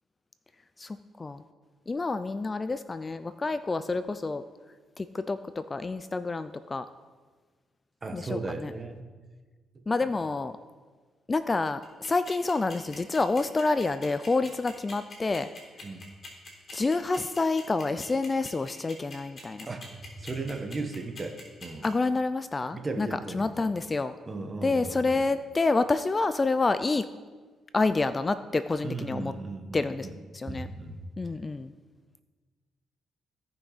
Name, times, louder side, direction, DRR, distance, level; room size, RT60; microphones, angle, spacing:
voice 1, 0.8-1.4 1.9-4.4 5.0-6.9 8.1-8.7 9.9-10.6 11.3-15.5 16.7-19.7 21.8-23.1 23.3-24.1 24.6-27.1 27.7-29.3 29.7-30.1 30.3-30.7 31.2-31.7, left 3 dB, 25° left, 12 dB, 0.4 m, -28 dB
voice 2, 8.0-9.1 15.8-16.1 19.7-21.8 22.7-23.7 24.3-25.2 28.8-30.2 30.5-31.0, right 3 dB, 30° right, 6 dB, 1.3 m, -36 dB
sound 1, 11.8-21.9, left 4 dB, 40° left, 3.7 m, -44 dB
17.0 x 5.9 x 4.1 m, 1.4 s
cardioid pair, 90°, 0 cm